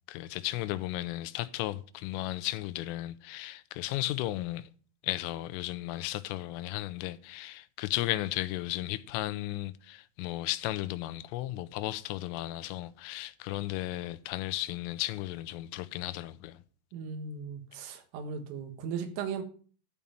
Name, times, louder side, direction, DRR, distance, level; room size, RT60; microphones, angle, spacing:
voice 1, 0.1-4.7 5.0-16.6, left 16 dB, 90° left, 3.3 m, -35 dB
voice 2, 16.9-19.4, right 6 dB, 85° right, 4.1 m, -37 dB
12.5 x 5.5 x 8.7 m
omnidirectional pair, 5.7 m